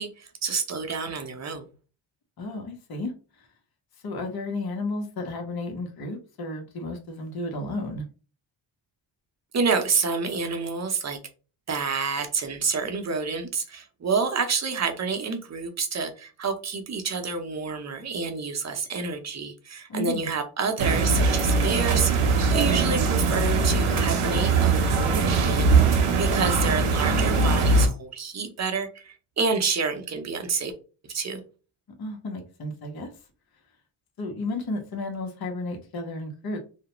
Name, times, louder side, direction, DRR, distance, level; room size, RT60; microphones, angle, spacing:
voice 1, 0.0-1.7 9.5-11.2 11.7-30.7 31.1-31.4, right 5 dB, 35° right, 6 dB, 0.7 m, -28 dB
voice 2, 2.4-3.1 3.4-3.5 4.0-8.0 19.9-20.3 32.0-33.1 34.2-36.6, left 2 dB, 50° left, 2 dB, 0.9 m, -33 dB
sound 1, 20.8-27.9, right 4 dB, 80° right, 0.8 m, -21 dB
2.4 x 2.1 x 2.9 m, 0.35 s
cardioid pair, 70°, 49 cm